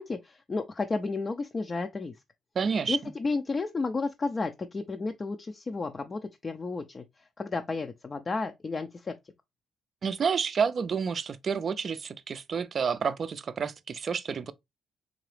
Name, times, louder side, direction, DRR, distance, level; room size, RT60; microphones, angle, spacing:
voice 1, 0.0-2.1 2.9-7.0 7.4-9.1, left 3 dB, 30° left, 0.4 m, -32 dB
voice 2, 2.6-3.1 10.0-14.5, right 6 dB, 45° right, 0.4 m, -29 dB
3.8 x 2.9 x 3.2 m
cardioid pair, 90°, 0 cm